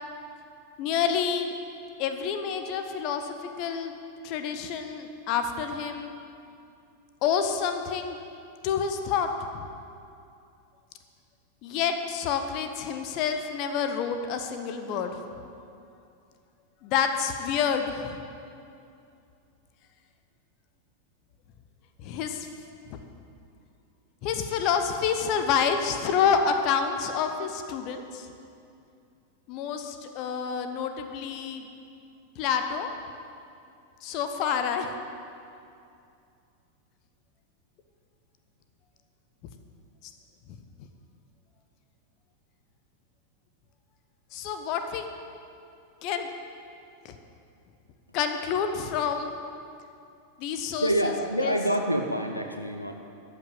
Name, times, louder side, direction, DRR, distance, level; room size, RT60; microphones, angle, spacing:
voice 1, 0.8-1.5 2.0-4.0 4.2-6.1 7.2-8.2 8.6-9.7 11.6-15.2 16.8-18.2 22.0-22.5 22.9-23.0 24.2-28.3 29.5-31.7 32.4-32.9 34.0-34.9 44.3-45.1 46.0-46.3 47.0-47.1 48.1-49.3 50.4-51.5, left 7 dB, 40° left, 7 dB, 0.9 m, -28 dB
voice 2, 50.8-52.9, right 1 dB, 90° left, 4 dB, 0.7 m, -26 dB
13.0 x 6.0 x 7.4 m, 2.5 s
figure-of-eight pair, 90°, 0 cm